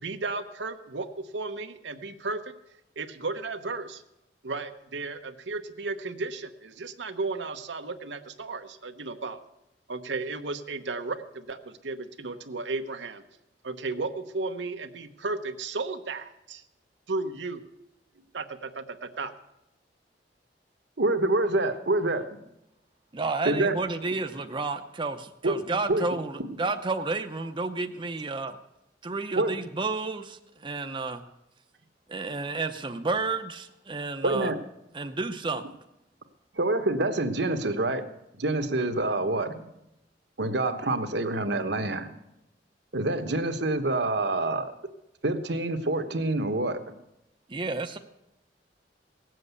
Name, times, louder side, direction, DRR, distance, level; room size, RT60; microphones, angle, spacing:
voice 1, 0.0-2.5 3.0-4.0 4.4-9.4 9.9-13.2 13.6-16.6 17.1-17.6 18.3-19.3, right 3 dB, 85° right, 7 dB, 1.0 m, -34 dB
voice 2, 21.0-22.3 23.4-23.8 25.4-25.6 25.9-26.1 29.3-29.5 34.2-34.6 36.5-38.1 38.3-39.8 40.4-42.1 42.9-44.8 45.2-46.9, right 2 dB, 70° right, 8 dB, 1.2 m, -26 dB
voice 3, 23.1-28.6 29.0-31.2 32.1-34.5 34.9-35.6 47.5-48.0, right 3 dB, 30° right, 6 dB, 0.7 m, -31 dB
18.0 x 7.6 x 8.2 m, 0.88 s
head